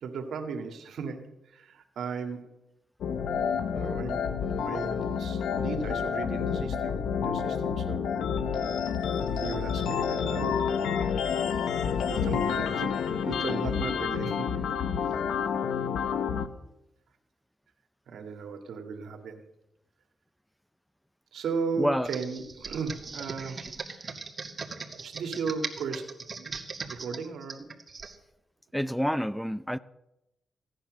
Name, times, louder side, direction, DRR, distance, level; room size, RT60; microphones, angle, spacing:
voice 1, 0.0-2.5 3.7-8.2 9.3-11.2 12.1-14.6 15.1-15.2 18.1-19.4 21.3-24.1 25.0-26.5 26.9-27.7, right 5 dB, 80° right, 2.1 m, -36 dB
sound 1, 3.0-16.5, left 7 dB, 85° left, 1.0 m, -29 dB
voice 2, 21.8-22.1 28.7-29.8, equal, ahead, 0.5 m, -28 dB
Computer keyboard, 22.0-28.2, right 4 dB, 40° right, 2.1 m, -39 dB
16.5 x 10.0 x 6.4 m
cardioid pair, 75°, 0 cm